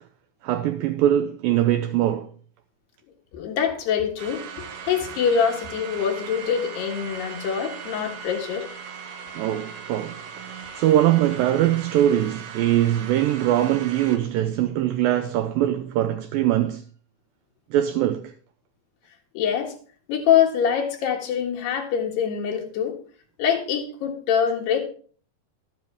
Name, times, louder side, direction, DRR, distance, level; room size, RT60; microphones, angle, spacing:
voice 1, 0.4-2.3 9.4-10.5 10.7-16.8 17.7-18.3, right 12 dB, 85° right, 2.0 m, -22 dB
voice 2, 3.3-8.7 19.4-19.7 20.1-22.9 23.4-24.8, left 8 dB, 85° left, 3.8 m, -24 dB
sound 1, 4.2-14.2, right 7 dB, 65° right, 2.7 m, -38 dB
12.0 x 10.0 x 3.5 m
omnidirectional pair, 4.6 m